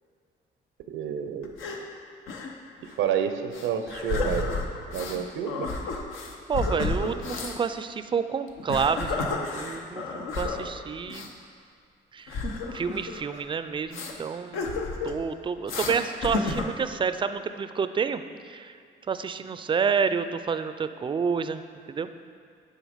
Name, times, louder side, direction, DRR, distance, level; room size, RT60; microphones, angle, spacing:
voice 1, 0.9-1.5 2.8-4.5 4.9-5.7, right 8 dB, 85° right, 7 dB, 0.6 m, -29 dB
sound 1, 1.4-1.8 2.3-2.5 2.8-2.9 3.5-5.2 5.5-7.6 8.5-10.7 11.1-11.3 12.3-13.4 13.9-14.1 14.5-15.2 15.7-16.0 16.2-16.9, left 3 dB, 85° left, 0.8 m, -31 dB
voice 2, 6.5-9.1 9.5-11.3 12.1-12.4 12.7-14.7 15.0-18.8 19.1-21.6 21.9-22.1, right 6 dB, 25° right, 11 dB, 0.3 m, -29 dB
9.3 x 3.9 x 5.0 m, 2.2 s
cardioid pair, 90°, 20 cm